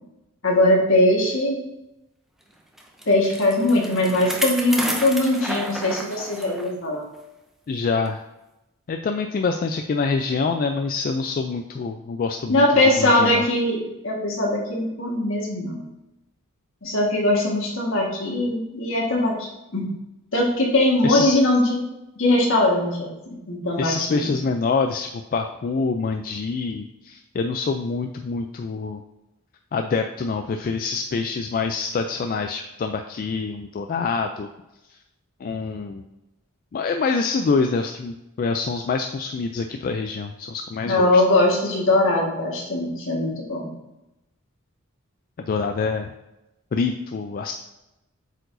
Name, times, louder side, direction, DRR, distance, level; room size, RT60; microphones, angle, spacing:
voice 1, 0.4-1.6 3.1-7.1 12.5-15.8 16.8-19.9 20.3-21.8 22.2-23.1 23.5-24.4 40.8-43.7, left 1 dB, 65° left, -2 dB, 1.5 m, -21 dB
Bicycle, 2.8-6.7 7.1-7.2 8.0-8.1, right 1 dB, ahead, 0.6 m, -31 dB
voice 2, 7.7-8.2 8.9-13.5 21.0-21.4 23.8-29.0 29.7-34.5 35.4-36.0 36.7-41.2 45.4-46.1 46.7-47.5, left 4 dB, 40° left, 5 dB, 0.3 m, -26 dB
7.9 x 4.6 x 2.6 m, 0.96 s
head